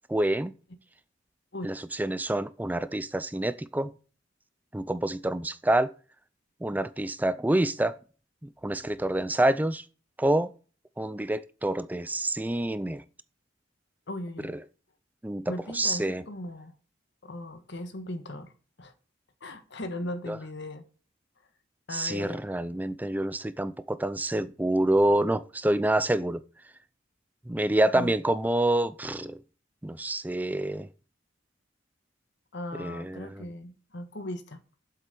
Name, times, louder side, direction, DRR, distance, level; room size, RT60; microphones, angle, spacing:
voice 1, 0.1-0.5 1.6-3.9 4.7-5.9 6.6-7.9 8.6-9.8 10.2-10.5 11.0-13.0 14.4-14.5 15.2-16.2 20.3-20.4 21.9-26.4 27.5-29.4 29.8-30.9 32.8-33.4, right 1 dB, 10° right, 0.4 m, -27 dB
voice 2, 14.1-14.6 15.4-16.8 17.2-18.5 18.8-18.9 19.4-20.8 21.9-22.4 27.9-28.1 32.5-34.6, left 1 dB, 65° left, 1.5 m, -38 dB
7.9 x 7.4 x 6.7 m
head